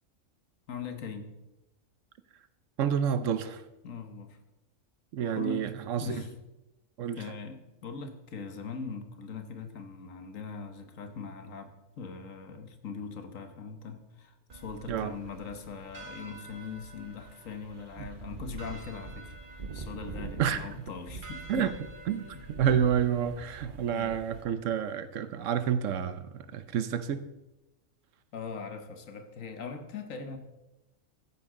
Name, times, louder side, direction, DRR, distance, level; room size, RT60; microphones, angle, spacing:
voice 1, 0.7-1.3 3.8-4.4 5.3-5.6 6.0-6.3 7.2-19.4 19.7-21.8 22.3-22.5 23.9-24.2 28.3-30.4, left 5 dB, 75° left, 7 dB, 1.5 m, -41 dB
voice 2, 2.8-3.6 5.1-6.2 7.0-7.2 14.9-15.1 18.0-18.1 20.4-20.7 21.5-21.7 22.1-22.3 22.6-27.3, right 8 dB, 70° right, 13 dB, 1.0 m, -29 dB
sound 1, 14.5-24.4, right 4 dB, 40° right, 1.2 m, -45 dB
14.0 x 9.6 x 3.7 m, 0.97 s
omnidirectional pair, 1.4 m